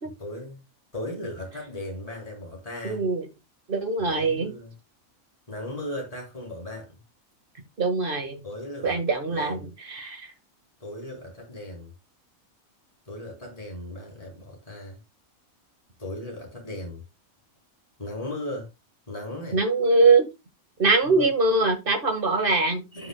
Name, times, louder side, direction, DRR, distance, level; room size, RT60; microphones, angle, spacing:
voice 1, 0.0-0.6 0.9-3.1 4.0-4.7 5.5-7.0 8.4-9.7 10.8-11.9 13.1-15.0 16.0-17.0 18.0-18.7 19.1-19.6 21.0-21.3 22.9-23.1, left 1 dB, 25° left, 3.7 m, -37 dB
voice 2, 2.8-3.3 3.7-4.5 7.8-8.4 8.8-9.6 9.9-10.3 19.5-20.3 20.8-22.8, right 3 dB, 40° right, 1.9 m, -22 dB
13.0 x 6.0 x 2.2 m
omnidirectional pair, 1.5 m